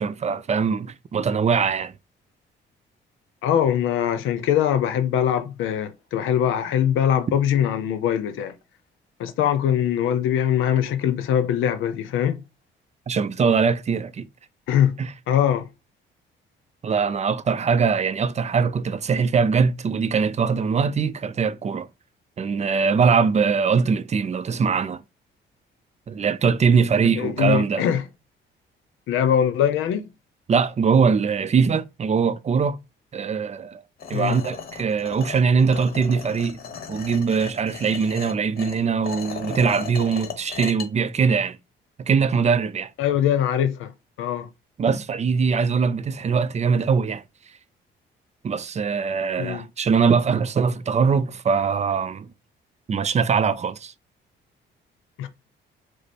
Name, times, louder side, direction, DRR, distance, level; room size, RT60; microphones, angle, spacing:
voice 1, 0.0-1.9 13.1-14.3 15.0-15.1 16.8-21.9 22.4-25.0 26.1-27.8 30.5-32.8 33.1-33.8 34.1-36.6 36.9-41.6 42.0-42.9 44.8-47.2 48.4-52.3 52.9-53.9, right 5 dB, 35° right, 0.4 m, -22 dB
voice 2, 3.4-8.5 9.2-12.4 14.7-15.7 27.2-28.0 29.1-30.1 34.1-34.4 43.0-43.9 44.2-44.5 49.4-49.7 55.2-55.3, left 9 dB, 85° left, 0.7 m, -22 dB
sound 1, 34.0-40.9, left 6 dB, 50° left, 1.1 m, -37 dB
5.0 x 2.0 x 4.3 m
cardioid pair, 90°, 20 cm